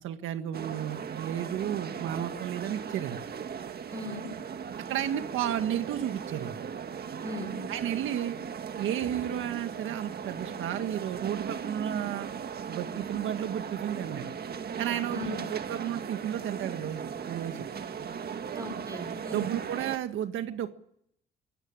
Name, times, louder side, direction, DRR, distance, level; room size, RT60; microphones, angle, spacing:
voice 1, 0.0-3.2 4.9-6.6 7.7-8.4 8.8-12.3 12.7-14.3 14.8-17.6 19.3-20.7, right 10 dB, 80° right, 8 dB, 1.7 m, -32 dB
sound 1, 0.5-20.0, right 7 dB, 50° right, 1.8 m, -38 dB
voice 2, 3.9-4.3 7.2-7.6 15.1-15.4 18.5-19.5, left 1 dB, 15° right, 8 dB, 5.3 m, -38 dB
24.5 x 17.0 x 8.9 m, 0.72 s
cardioid pair, 90°, 20 cm